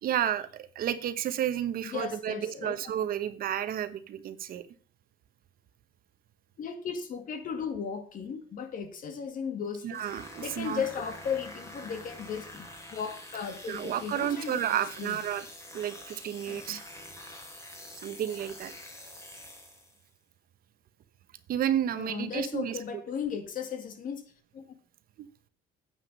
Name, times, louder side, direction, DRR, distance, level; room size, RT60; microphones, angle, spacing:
voice 1, 0.0-4.6 9.8-10.8 13.7-15.5 15.7-16.9 18.0-18.7 21.5-22.8 25.2-25.3, right 10 dB, 60° right, 12 dB, 1.1 m, -31 dB
voice 2, 1.9-2.8 6.6-10.0 10.4-12.6 12.9-15.2 16.5-16.8 21.9-24.2 24.5-24.6, left 6 dB, 55° left, 8 dB, 2.0 m, -36 dB
sound 1, 9.9-20.1, left 1 dB, 15° left, 3.1 m, -46 dB
9.3 x 9.0 x 5.4 m, 0.42 s
cardioid pair, 110°, 17 cm